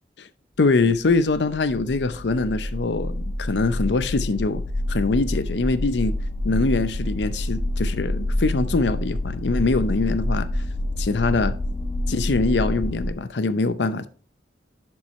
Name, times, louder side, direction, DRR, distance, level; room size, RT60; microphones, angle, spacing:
voice 1, 0.6-4.6 4.9-6.2 6.4-10.5 11.0-11.6 12.1-14.1, left 3 dB, 80° left, 0.6 m, -23 dB
sound 1, 0.8-13.1, left 1 dB, 35° left, 1.3 m, -27 dB
10.5 x 4.4 x 3.2 m
head